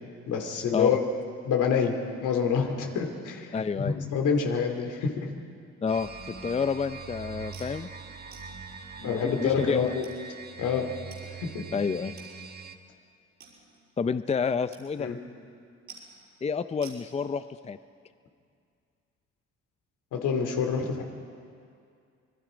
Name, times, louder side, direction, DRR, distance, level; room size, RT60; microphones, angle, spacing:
voice 1, 0.3-1.0 1.4-1.9 2.2-5.3 9.0-10.1 10.6-10.9 11.3-11.7 15.0-15.2 20.1-21.0, left 6 dB, 85° left, 3 dB, 2.7 m, -27 dB
voice 2, 3.5-3.9 5.8-7.9 9.0-9.9 11.7-12.2 14.0-15.1 16.4-17.8, left 5 dB, 20° left, 12 dB, 0.5 m, -29 dB
sound 1, 5.9-12.8, right 4 dB, 30° right, 1.5 m, -43 dB
sound 2, 7.5-7.8 8.3-8.5 9.3-9.4 10.0-10.2 11.1-11.2 11.5-11.6 12.2-12.3 12.7-12.8 13.4-13.9 14.7-14.9 15.1-15.5 15.9-16.3 16.8-17.0, right 6 dB, 75° right, 5.8 m, -49 dB
26.0 x 21.0 x 5.1 m, 2.4 s
cardioid pair, 90°, 30 cm